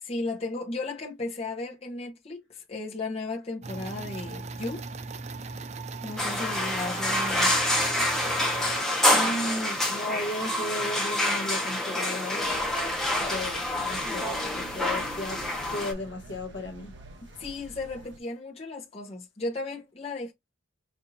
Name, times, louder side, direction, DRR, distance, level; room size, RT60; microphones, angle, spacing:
voice 1, 0.0-4.8 6.0-7.5 14.0-14.2 17.4-20.3, left 2 dB, 30° left, 0.9 m, -35 dB
sound 1, 3.6-8.8, right 3 dB, 35° right, 0.4 m, -38 dB
sound 2, 6.2-15.9, left 1 dB, ahead, 1.0 m, -27 dB
voice 2, 9.1-12.6 13.2-15.4 15.7-16.9, left 1 dB, 60° left, 1.1 m, -35 dB
sound 3, 12.4-18.2, right 2 dB, 60° right, 1.0 m, -47 dB
5.4 x 2.6 x 2.6 m
head